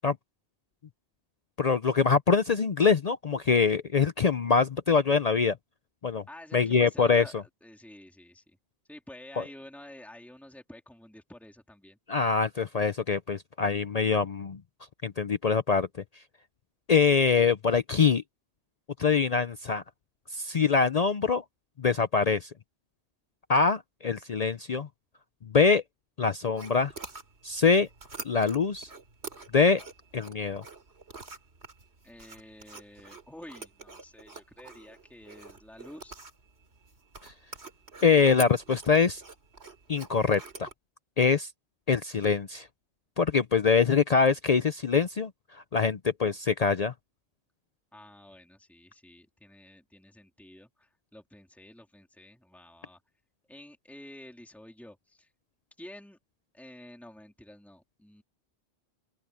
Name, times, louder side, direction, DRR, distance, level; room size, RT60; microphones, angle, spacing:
voice 1, 1.6-5.6 6.0-6.2 6.5-7.2 12.1-14.6 15.0-15.9 16.9-18.2 19.0-19.8 20.3-21.4 21.8-22.5 23.5-24.9 25.5-25.8 26.2-26.9 27.4-27.9 28.2-28.9 29.5-29.8 30.1-30.6 37.2-37.3 38.0-39.2 39.9-40.7 41.2-41.5 41.9-42.7 43.2-45.3 45.7-46.9, left 5 dB, 45° left, 0.6 m, -24 dB
voice 2, 6.3-8.6 8.9-12.0 32.0-36.2 47.9-53.0 53.5-55.3 55.8-56.2 56.5-58.2, left 1 dB, ahead, 2.9 m, -50 dB
sound 1, 26.5-40.7, right 3 dB, 80° right, 3.3 m, -47 dB
open air
omnidirectional pair, 1.1 m